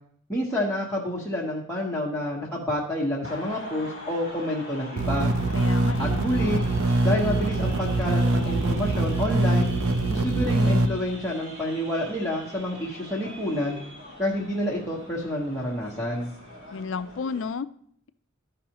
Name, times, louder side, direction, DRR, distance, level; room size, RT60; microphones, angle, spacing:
voice 1, 0.3-5.3 6.0-6.6 7.0-9.7 10.1-13.8 14.2-16.3, left 1 dB, 5° left, -6 dB, 1.0 m, -28 dB
sound 1, 3.2-17.4, left 1 dB, 65° right, 4.0 m, -42 dB
sound 2, 5.0-10.9, right 2 dB, 80° right, 0.7 m, -23 dB
voice 2, 5.5-6.3 16.7-17.7, left 5 dB, 60° left, 13 dB, 0.4 m, -32 dB
13.5 x 5.5 x 2.9 m, 0.64 s
head